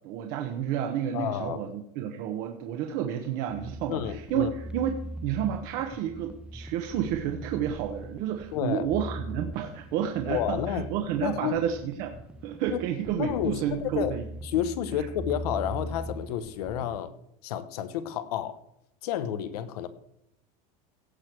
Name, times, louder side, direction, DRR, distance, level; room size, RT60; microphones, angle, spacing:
voice 1, 0.0-4.9 5.2-14.2, right 9 dB, 50° right, 4 dB, 1.1 m, -30 dB
voice 2, 1.1-1.6 3.9-4.5 8.5-8.9 10.3-10.9 11.2-11.6 12.7-12.8 13.2-14.2 14.4-17.1 17.4-18.6 19.0-19.9, left 10 dB, 85° left, 13 dB, 1.0 m, -30 dB
sound 1, 3.5-17.0, right 1 dB, 5° right, 0.4 m, -41 dB
16.5 x 6.5 x 4.6 m, 0.79 s
supercardioid pair, 155°, 20 cm